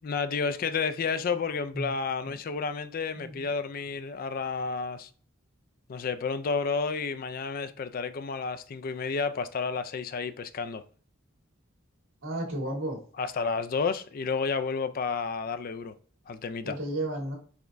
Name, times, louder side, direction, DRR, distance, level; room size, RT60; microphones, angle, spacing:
voice 1, 0.0-5.1 5.9-10.8 13.2-15.9 16.3-16.8, left 5 dB, 45° left, 0.4 m, -31 dB
voice 2, 12.2-13.0 16.6-17.4, right 1 dB, 80° right, 1.7 m, -33 dB
4.9 x 3.4 x 2.5 m
head